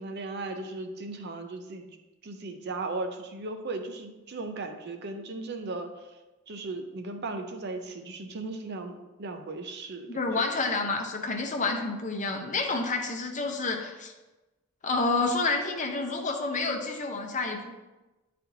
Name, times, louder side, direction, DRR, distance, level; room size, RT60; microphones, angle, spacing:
voice 1, 0.0-1.9 2.2-5.9 6.5-10.1, right 3 dB, 55° right, 6 dB, 0.6 m, -36 dB
voice 2, 10.1-14.1 14.8-17.7, left 3 dB, 40° left, 3 dB, 0.8 m, -29 dB
9.5 x 4.2 x 2.8 m, 1.1 s
head